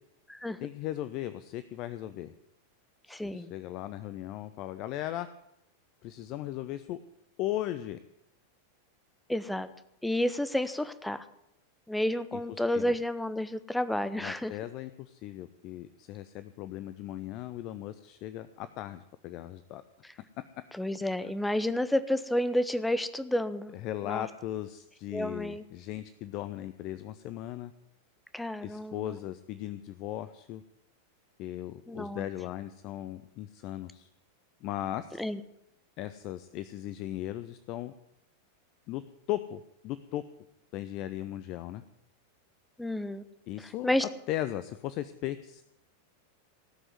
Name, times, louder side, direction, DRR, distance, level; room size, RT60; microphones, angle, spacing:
voice 1, 0.6-2.3 3.1-5.3 6.0-7.0 7.4-8.0 12.3-12.4 12.7-13.0 14.2-19.8 23.7-27.7 28.6-30.6 31.4-34.1 34.6-35.2 36.0-37.9 38.9-39.0 39.3-40.2 40.7-41.8 43.5-43.9 44.3-45.6, left 13 dB, 40° left, 13 dB, 0.6 m, -37 dB
voice 2, 3.1-3.5 9.3-9.7 10.0-11.2 11.9-14.5 20.7-23.7 24.0-24.2 25.1-25.6 28.3-29.1 31.9-32.2 35.2-35.4 42.8-43.2 43.8-44.0, left 1 dB, 5° left, 13 dB, 0.8 m, -30 dB
18.0 x 6.2 x 9.5 m, 0.82 s
figure-of-eight pair, 90°, 0 cm